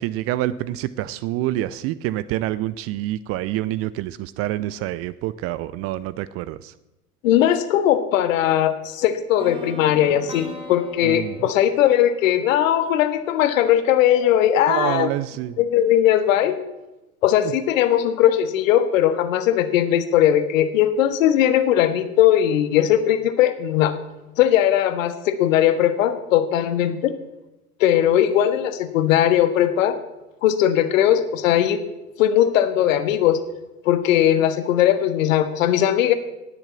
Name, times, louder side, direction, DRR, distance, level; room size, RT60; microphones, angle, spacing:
voice 1, 0.0-6.7 11.0-11.4 14.7-15.6, right 14 dB, 30° right, 17 dB, 0.5 m, -27 dB
voice 2, 7.2-15.1 15.6-16.6 17.2-23.9 24.4-27.1 27.8-30.0 30.4-31.8 32.2-33.4 33.8-36.1, left 11 dB, 60° left, 11 dB, 1.6 m, -19 dB
sound 1, 9.4-13.3, equal, 10° right, 3.1 m, -40 dB
18.5 x 6.9 x 8.3 m, 1.0 s
figure-of-eight pair, 85°, 45 cm